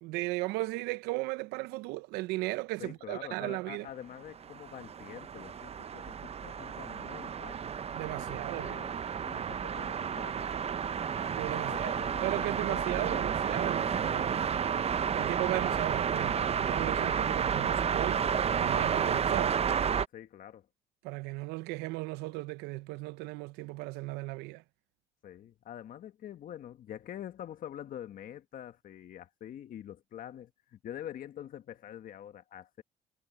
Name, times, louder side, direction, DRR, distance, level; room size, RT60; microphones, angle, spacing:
voice 1, 0.0-3.9 7.9-8.8 11.4-14.4 15.1-18.3 18.6-19.6 21.0-24.6, right 21 dB, 85° right, 0.7 m, -36 dB
voice 2, 2.8-7.7 8.1-10.7 11.5-13.3 13.5-14.5 20.1-20.7 25.2-32.8, left 10 dB, 55° left, 1.2 m, -46 dB
sound 1, 4.3-20.1, right 7 dB, 40° right, 0.7 m, -31 dB
supercardioid pair, 70°, 17 cm